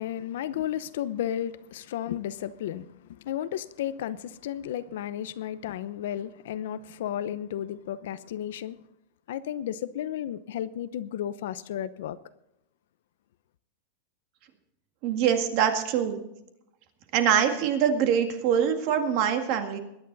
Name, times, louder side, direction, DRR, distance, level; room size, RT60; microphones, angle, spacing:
voice 1, 0.0-8.8 9.3-12.2, left 11 dB, 65° left, 0.8 m, -33 dB
voice 2, 15.0-16.2 17.1-19.8, right 8 dB, 40° right, 2.0 m, -24 dB
21.5 x 10.0 x 4.1 m
supercardioid pair, 170°, 0 cm